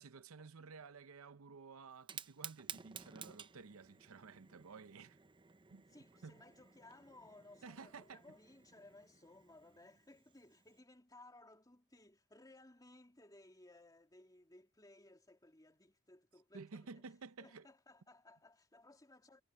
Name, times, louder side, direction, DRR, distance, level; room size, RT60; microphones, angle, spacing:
voice 1, 0.0-5.2 5.7-5.8 6.2-6.4 7.6-8.2 16.5-17.7, right 4 dB, 85° right, 0.7 m, -53 dB
Fire, 1.9-10.8, right 7 dB, 25° right, 0.7 m, -55 dB
voice 2, 5.9-17.1 17.4-19.4, left 2 dB, 20° left, 2.7 m, -61 dB
head